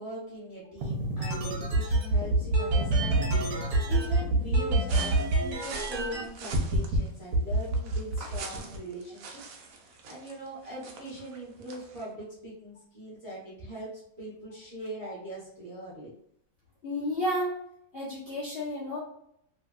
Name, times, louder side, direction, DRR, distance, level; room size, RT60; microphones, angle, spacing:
voice 1, 0.0-16.1, right 1 dB, 40° right, -8 dB, 0.4 m, -41 dB
sound 1, 0.8-6.2 6.5-7.0 7.3-8.8, right 2 dB, 65° right, 1.0 m, -26 dB
sound 2, 4.9-12.1, right 4 dB, 90° right, 0.7 m, -45 dB
voice 2, 16.8-17.6 17.9-19.0, equal, 55° left, -7 dB, 0.6 m, -31 dB
3.1 x 2.7 x 2.3 m, 0.72 s
omnidirectional pair, 2.1 m